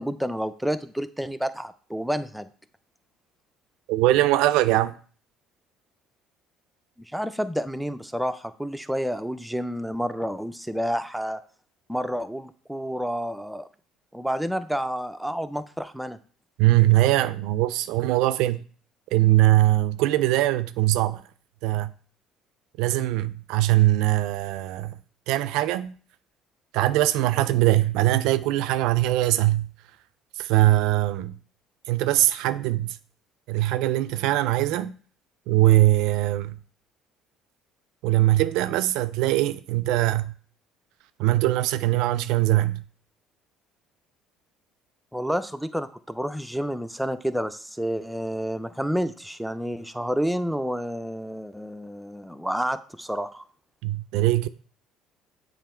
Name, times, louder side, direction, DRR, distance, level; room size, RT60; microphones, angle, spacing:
voice 1, 0.0-2.5 7.1-11.4 11.9-13.7 14.1-16.2 45.1-53.4, equal, ahead, 0.5 m, -29 dB
voice 2, 3.9-5.0 16.6-18.6 19.1-21.2 21.6-21.9 22.8-25.0 25.3-26.0 26.7-29.7 30.4-31.4 31.9-33.0 33.5-35.0 35.5-36.6 38.0-40.3 41.2-42.8 53.8-54.5, right 15 dB, 75° right, 0.3 m, -21 dB
7.4 x 3.0 x 4.4 m
supercardioid pair, 80°, 0 cm